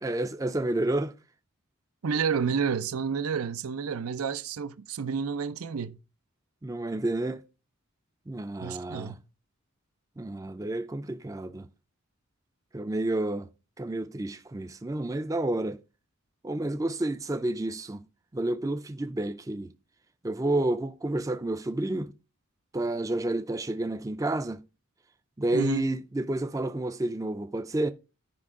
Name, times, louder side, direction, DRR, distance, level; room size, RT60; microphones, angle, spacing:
voice 1, 0.0-1.1 6.6-7.4 8.3-9.2 10.2-11.7 12.7-13.5 13.8-15.8 16.4-18.0 18.3-19.7 20.2-22.1 22.7-24.6 25.4-27.9, right 2 dB, 15° right, 0.4 m, -30 dB
voice 2, 2.0-6.0 8.6-9.2 25.5-25.9, right 6 dB, 85° right, 0.5 m, -30 dB
10.5 x 5.3 x 3.6 m
head